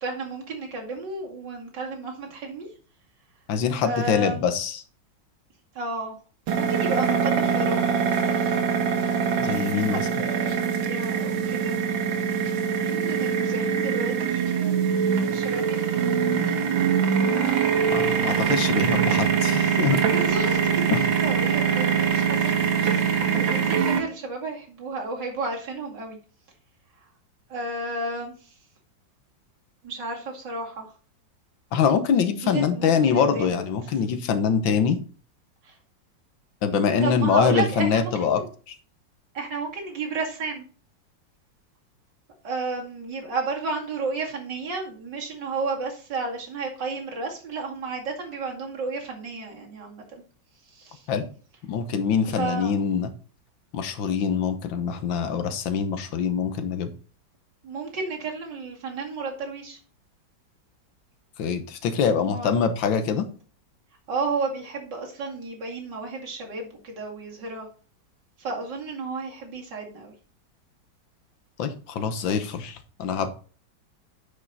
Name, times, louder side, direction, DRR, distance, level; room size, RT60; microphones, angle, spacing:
voice 1, 0.0-2.7 3.8-4.5 5.7-6.1 6.6-8.5 9.8-11.8 12.8-16.3 18.1-18.6 20.1-26.2 27.5-28.3 29.8-30.9 32.4-33.6 35.6-35.7 37.0-38.5 39.3-40.6 42.4-50.0 50.7-51.0 52.4-52.7 57.6-59.8 62.0-62.6 64.1-67.7 68.4-70.1, right 3 dB, 65° right, 0 dB, 2.9 m, -32 dB
voice 2, 3.5-4.8 9.4-10.1 17.9-20.0 20.9-21.0 31.7-35.0 36.6-38.4 38.7-38.8 51.1-51.2 51.7-53.1 53.7-56.9 61.4-63.3 71.6-73.3, left 6 dB, 75° left, 10 dB, 1.7 m, -24 dB
sound 1, 6.5-24.0, right 7 dB, 80° right, 2.1 m, -23 dB
9.8 x 5.6 x 4.1 m, 0.39 s
omnidirectional pair, 2.1 m